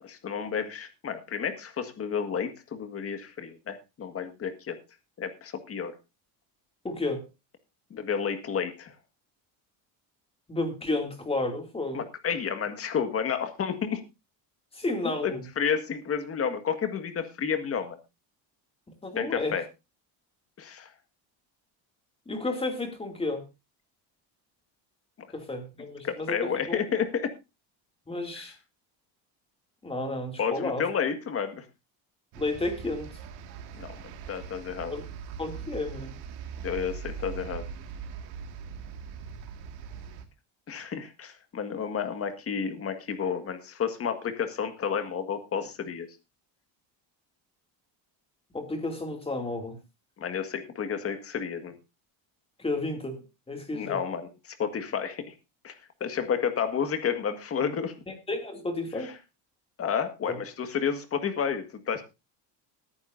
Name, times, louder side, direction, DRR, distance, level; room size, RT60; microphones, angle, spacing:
voice 1, 0.0-4.8 5.2-5.9 7.9-8.9 11.9-14.0 15.2-15.3 15.6-18.0 19.2-19.6 20.6-20.9 26.0-27.3 28.3-28.5 30.4-31.6 33.7-34.9 36.6-37.6 40.7-46.1 50.2-51.7 53.7-55.3 55.6-55.7 56.0-57.9 59.8-62.0, left 7 dB, 30° left, 8 dB, 1.8 m, -31 dB
voice 2, 6.8-7.3 10.5-12.0 14.7-15.4 19.0-19.6 22.3-23.4 25.3-26.8 28.1-28.6 29.8-30.9 32.3-33.2 34.9-35.0 35.4-36.2 48.5-49.8 52.6-54.0 58.1-59.2 60.3-60.4, left 2 dB, 15° left, 4 dB, 2.5 m, -32 dB
sound 1, 32.3-40.3, right 6 dB, 80° right, 2.1 m, -41 dB
20.0 x 9.7 x 2.6 m, 0.26 s
cardioid pair, 145°, 44 cm